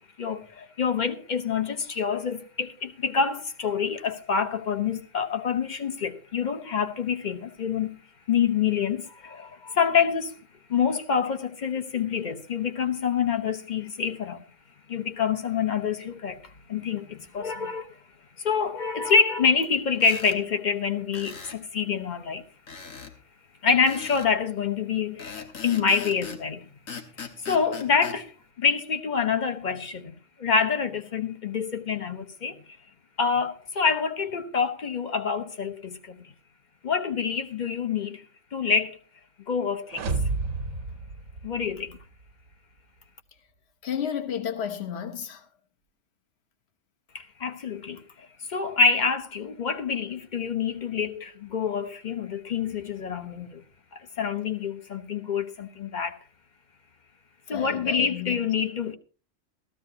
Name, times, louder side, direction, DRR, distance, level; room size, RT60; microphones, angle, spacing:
voice 1, 0.2-8.0 8.3-10.4 10.7-14.4 14.9-18.0 18.4-22.4 23.6-26.7 27.2-32.8 33.2-36.3 36.8-38.2 38.5-39.0 39.5-40.0 41.4-42.0 47.1-53.6 53.9-56.2 57.5-59.0, left 6 dB, 40° left, 1.0 m, -27 dB
sound 1, 20.0-20.4 21.1-21.6 22.7-23.1 23.9-24.3 25.2-26.4 26.9-28.2, left 6 dB, 90° left, 1.7 m, -40 dB
sound 2, 39.9-42.0, right 3 dB, 85° right, 1.6 m, -30 dB
voice 2, 43.8-45.4 57.5-58.4, left 8 dB, 55° left, 1.4 m, -32 dB
16.0 x 14.0 x 2.8 m
omnidirectional pair, 1.3 m